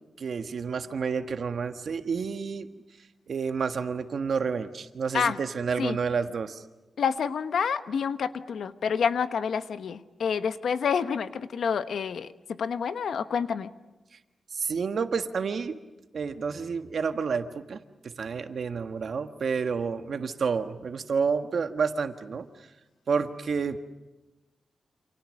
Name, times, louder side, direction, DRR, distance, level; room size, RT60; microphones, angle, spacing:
voice 1, 0.2-2.7 3.3-6.6 14.5-15.8 16.1-22.5 23.1-23.8, right 5 dB, 60° right, 8 dB, 1.5 m, -29 dB
voice 2, 7.0-12.3 12.6-13.7, left 6 dB, 80° left, 11 dB, 1.2 m, -28 dB
28.5 x 28.0 x 6.5 m, 1.1 s
wide cardioid pair, 150°, 0 cm